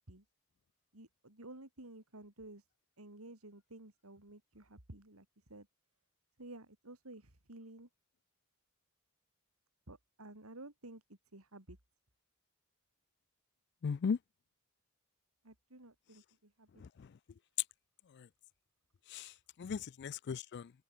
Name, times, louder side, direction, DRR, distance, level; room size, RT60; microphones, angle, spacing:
voice 1, 0.9-2.6 3.0-5.7 6.4-7.9 9.9-11.8 15.4-16.7 19.6-19.8, right 2 dB, 90° right, 3.8 m, -53 dB
voice 2, 13.8-14.2 16.8-17.1 18.2-18.3 19.1-19.3 19.6-20.7, left 6 dB, 55° left, 0.4 m, -37 dB
open air
head